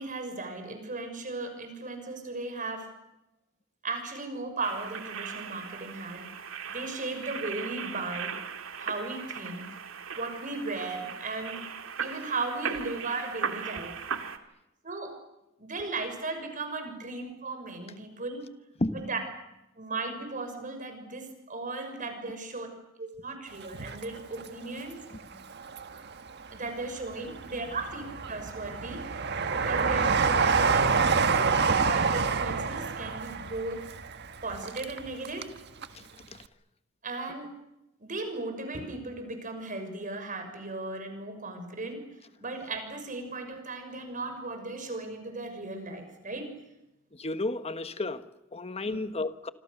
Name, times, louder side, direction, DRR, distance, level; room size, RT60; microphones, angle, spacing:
voice 1, 0.0-2.9 3.8-6.3 6.7-8.3 8.8-9.7 10.1-11.6 12.0-13.9 14.8-15.2 15.6-18.4 18.9-19.2 19.8-22.7 23.0-25.0 26.5-29.0 29.5-31.5 31.7-33.8 34.4-35.5 37.0-37.5 38.0-42.0 42.4-46.5 48.8-49.1, right 3 dB, 40° right, 6.4 m, -36 dB
sound 1, 4.6-14.4, right 6 dB, 80° right, 2.3 m, -38 dB
voice 2, 18.8-19.1 27.2-27.3 27.7-27.8 35.9-36.0 36.3-36.4 47.1-49.5, left 2 dB, 30° left, 1.3 m, -33 dB
Train, 23.6-24.9 25.3-26.3 26.8-35.6 35.8-35.9, right 5 dB, 55° right, 1.5 m, -27 dB
27.0 x 26.0 x 6.8 m
head